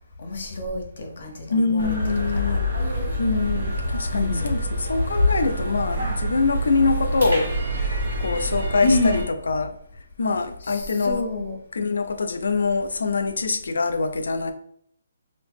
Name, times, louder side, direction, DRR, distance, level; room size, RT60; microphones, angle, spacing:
voice 1, 0.2-1.9 2.3-2.6 4.1-4.5 8.8-9.2 10.7-11.6, left 3 dB, 45° left, 0.8 m, -27 dB
voice 2, 1.5-2.7 3.2-7.5 7.8-7.9 8.2-9.7 10.2-11.3 11.7-14.5, left 4 dB, 75° left, 0.4 m, -24 dB
sound 1, 1.8-9.2, right 1 dB, 60° right, 1.4 m, -27 dB
2.9 x 2.8 x 3.5 m
hypercardioid pair, 180°, 0 cm